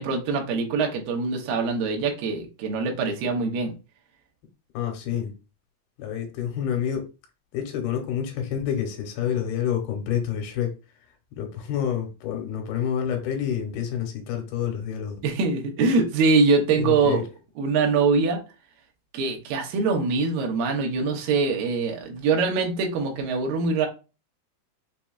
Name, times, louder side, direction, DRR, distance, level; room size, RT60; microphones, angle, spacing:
voice 1, 0.0-3.7 15.2-17.2 17.6-18.4 19.1-23.9, right 4 dB, 70° right, 2.4 m, -23 dB
voice 2, 4.7-5.3 6.0-7.1 7.5-10.7 11.3-15.2 16.8-17.2, left 9 dB, 80° left, 2.8 m, -28 dB
6.2 x 2.7 x 2.3 m
omnidirectional pair, 4.6 m